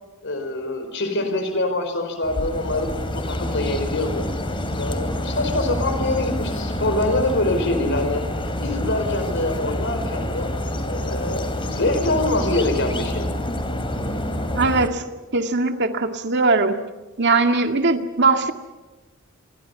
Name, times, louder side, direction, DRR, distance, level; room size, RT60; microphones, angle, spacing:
voice 1, 0.2-4.2 4.8-8.2 8.6-10.5 10.9-13.3, left 2 dB, 60° left, 7 dB, 4.9 m, -25 dB
sound 1, 2.2-14.9, left 1 dB, 25° left, 3.1 m, -27 dB
voice 2, 14.5-15.0 15.3-16.8 17.2-18.5, right 3 dB, 55° right, 5 dB, 2.1 m, -20 dB
28.5 x 23.0 x 5.6 m, 1.1 s
head